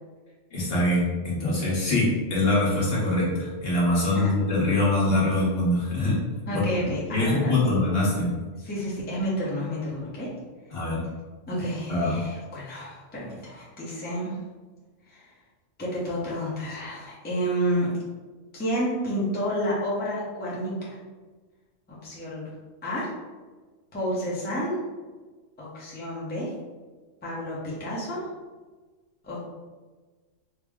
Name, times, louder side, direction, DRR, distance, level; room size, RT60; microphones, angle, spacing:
voice 1, 0.5-6.2 6.5-8.3 10.7-11.0 11.9-12.2, left 2 dB, 50° left, -6 dB, 1.2 m, -24 dB
voice 2, 6.5-7.5 8.6-10.3 11.5-14.4 15.1-15.3 15.8-17.9 18.5-21.0 21.9-22.5 22.8-23.1 23.9-24.7 25.6-26.5 27.2-28.3 29.2-29.4, equal, 10° left, -7 dB, 0.7 m, -30 dB
3.7 x 2.1 x 3.5 m, 1.3 s
omnidirectional pair, 1.3 m